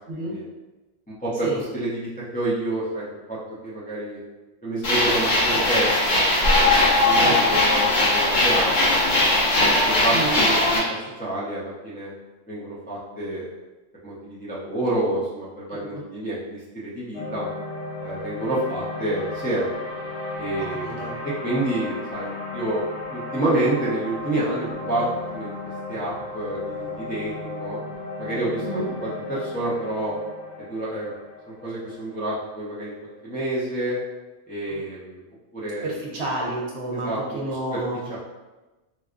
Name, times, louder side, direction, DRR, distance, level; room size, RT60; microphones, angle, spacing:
voice 1, 0.1-0.4 1.4-1.6 7.1-7.4 10.1-10.4 20.8-21.1 28.6-28.9 34.7-34.8 35.8-38.0, right 2 dB, 65° right, -3 dB, 0.9 m, -29 dB
voice 2, 1.1-3.4 3.6-4.2 4.6-6.7 7.0-9.2 9.6-12.1 12.5-13.5 14.0-17.5 18.0-19.7 20.4-22.8 23.1-25.0 25.3-25.5 25.9-27.8 28.2-30.1 30.6-31.1 31.5-34.0 34.5-35.2 35.5-35.9 37.0-37.2 37.5-37.8 38.1-38.2, right 1 dB, 10° left, -9 dB, 0.4 m, -29 dB
sound 1, 4.8-10.8, left 2 dB, 85° left, 1.4 m, -19 dB
sound 2, 17.1-33.4, left 2 dB, 35° left, 1.1 m, -34 dB
4.6 x 2.3 x 2.4 m, 1.1 s
omnidirectional pair, 1.3 m